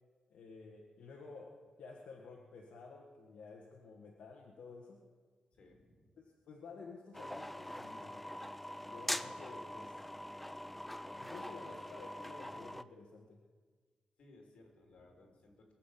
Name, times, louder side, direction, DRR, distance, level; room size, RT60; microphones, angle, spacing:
voice 1, 0.3-5.0 6.2-8.3 8.9-9.9 11.2-13.4, left 4 dB, 85° left, -1 dB, 1.6 m, -52 dB
voice 2, 5.5-6.2 11.6-11.7 14.2-15.7, left 2 dB, 65° left, 2 dB, 3.3 m, -61 dB
sound 1, 7.1-12.8, left 1 dB, 5° left, 0.4 m, -43 dB
22.5 x 7.5 x 7.6 m, 1.5 s
wide cardioid pair, 175°, 2 cm